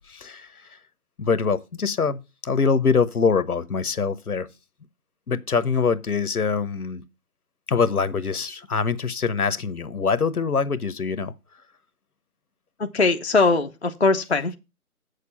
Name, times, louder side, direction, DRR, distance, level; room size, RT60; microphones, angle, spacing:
voice 1, 0.1-0.5 1.2-4.5 5.3-7.0 7.7-11.3, left 5 dB, 75° left, 1.0 m, -24 dB
voice 2, 12.8-14.5, left 3 dB, 45° left, 0.6 m, -21 dB
8.2 x 6.8 x 5.4 m
figure-of-eight pair, 175°, 45 cm